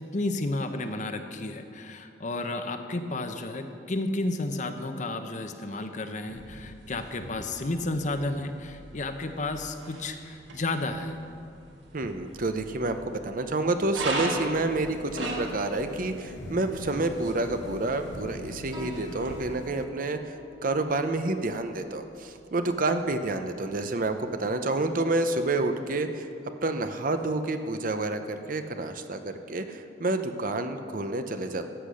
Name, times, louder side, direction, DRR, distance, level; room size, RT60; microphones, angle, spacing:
voice 1, 0.1-11.2, left 2 dB, 40° left, 7 dB, 0.8 m, -32 dB
sound 1, 6.3-19.3, right 2 dB, 85° right, 1.9 m, -39 dB
voice 2, 11.9-20.3 20.6-26.3 26.6-31.7, right 2 dB, 50° right, 8 dB, 0.7 m, -29 dB
sound 2, 14.5-19.8, left 2 dB, 85° left, 0.7 m, -45 dB
Piano, 18.7-25.8, equal, 25° right, 1.3 m, -50 dB
13.5 x 8.4 x 6.3 m, 2.5 s
head